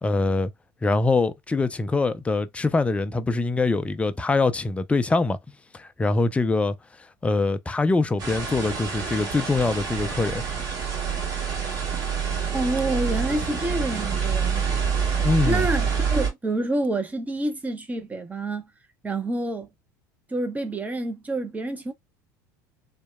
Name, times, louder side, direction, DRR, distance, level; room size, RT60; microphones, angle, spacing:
voice 1, 0.0-0.5 0.8-5.4 5.7-6.8 7.2-10.4 15.2-15.7, left 3 dB, 15° left, 0.4 m, -23 dB
sound 1, 8.2-16.3, right 6 dB, 40° right, 1.5 m, -27 dB
voice 2, 12.5-14.6 15.4-18.7 19.0-19.7 20.3-21.9, right 2 dB, 15° right, 0.7 m, -28 dB
2.7 x 2.2 x 2.2 m
hypercardioid pair, 90°, 10 cm